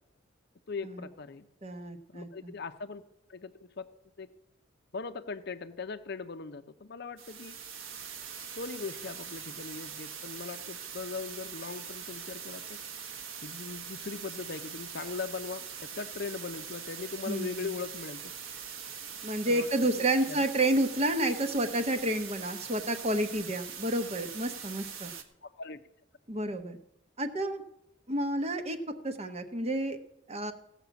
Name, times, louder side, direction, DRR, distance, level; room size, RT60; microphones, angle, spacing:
voice 1, 0.7-1.5 2.1-3.0 3.3-3.9 4.2-4.3 4.9-7.6 8.6-12.8 13.4-18.3 19.4-19.7 19.9-20.4 25.4-25.8, left 4 dB, 55° left, 9 dB, 0.6 m, -40 dB
voice 2, 1.6-2.5 17.3-17.7 19.2-25.1 26.3-26.8 27.2-27.6 28.1-28.8 29.0-30.0 30.3-30.5, right 1 dB, 30° right, 7 dB, 0.9 m, -30 dB
sound 1, 7.2-25.2, right 7 dB, 85° right, 1.4 m, -42 dB
16.0 x 6.0 x 8.2 m, 0.80 s
head